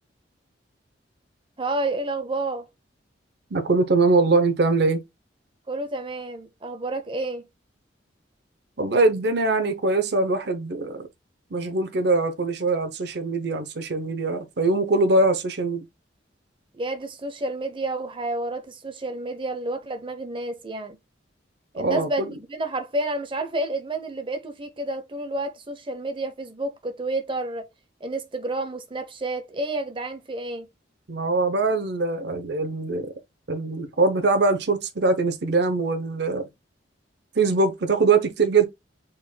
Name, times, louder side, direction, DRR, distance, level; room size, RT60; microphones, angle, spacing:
voice 1, 1.6-2.7 5.7-7.5 16.7-21.0 21.7-27.7 28.0-30.7, right 2 dB, 30° right, 0.8 m, -30 dB
voice 2, 3.5-5.0 8.8-11.1 11.5-15.8 21.8-22.3 31.1-33.1 33.5-36.5 37.4-38.7, right 3 dB, 65° right, 0.7 m, -22 dB
5.1 x 4.3 x 2.2 m
head